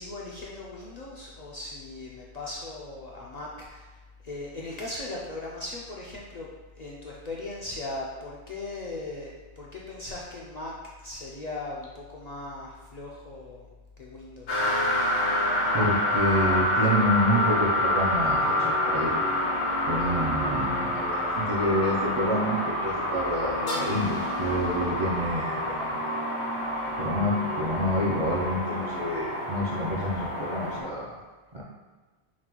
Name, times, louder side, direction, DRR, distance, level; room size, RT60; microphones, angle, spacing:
voice 1, 0.0-6.5 6.8-10.7 11.0-13.7 14.0-14.7, left 2 dB, 55° left, -4 dB, 0.5 m, -38 dB
sound 1, 14.5-30.8, left 1 dB, 85° left, 1.4 m, -27 dB
voice 2, 15.7-19.2 19.9-26.0 27.0-31.1 31.5-31.6, equal, 45° right, -6 dB, 0.4 m, -28 dB
5.8 x 2.2 x 2.9 m, 1.3 s
omnidirectional pair, 1.1 m